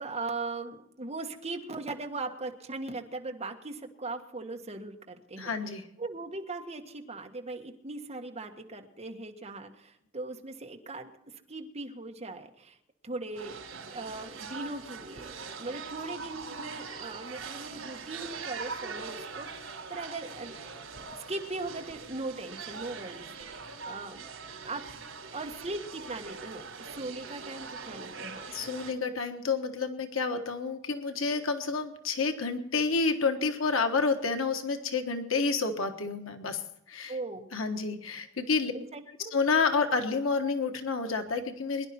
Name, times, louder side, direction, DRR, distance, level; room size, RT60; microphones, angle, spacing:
voice 1, 0.0-5.5 6.0-12.8 13.0-13.6 13.9-20.5 21.3-24.3 24.6-24.8 25.3-28.5 37.1-37.5 38.7-39.3, right 3 dB, 35° right, 3 dB, 1.6 m, -39 dB
voice 2, 5.4-5.8 28.5-36.6 36.9-37.1 37.5-38.7 39.3-41.9, left 4 dB, 85° left, 6 dB, 1.4 m, -29 dB
sound 1, 13.3-28.9, right 5 dB, 80° right, 3.6 m, -42 dB
22.5 x 11.0 x 4.4 m, 0.78 s
head